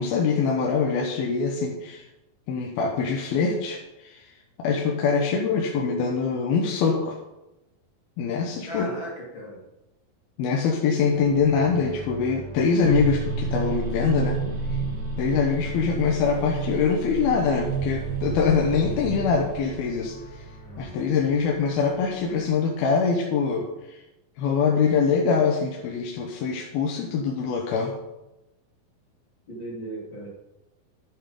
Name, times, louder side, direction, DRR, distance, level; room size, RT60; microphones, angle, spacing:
voice 1, 0.0-2.0 2.5-4.2 4.6-7.2 8.2-8.9 10.4-14.4 14.7-14.8 15.2-20.2 20.8-24.0 24.4-27.9, left 5 dB, 85° left, 0 dB, 3.0 m, -24 dB
voice 2, 8.7-9.6 29.5-30.3, right 1 dB, 35° left, -3 dB, 3.1 m, -36 dB
sound 1, 11.1-22.5, right 1 dB, 15° left, 2.2 m, -44 dB
sound 2, 12.8-20.9, right 4 dB, 70° right, 5.3 m, -30 dB
11.5 x 8.6 x 5.1 m, 0.96 s
omnidirectional pair, 4.3 m